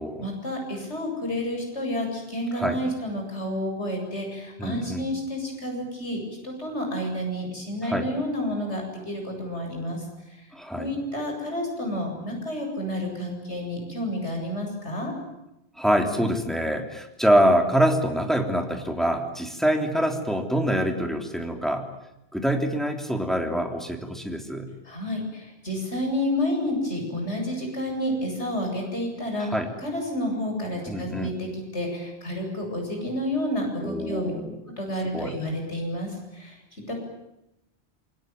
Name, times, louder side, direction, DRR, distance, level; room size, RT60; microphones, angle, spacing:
voice 1, 0.2-10.0 10.7-15.1 24.8-29.5 29.8-34.3 34.8-36.6 36.9-37.0, left 1 dB, 85° left, 1 dB, 8.5 m, -30 dB
voice 2, 4.6-5.0 7.8-8.1 10.5-10.9 15.8-21.9 22.3-24.7 29.5-29.7 30.9-31.5 33.8-34.6 35.1-35.3, equal, ahead, 3 dB, 3.4 m, -25 dB
28.0 x 22.5 x 9.4 m, 0.88 s
omnidirectional pair, 1.1 m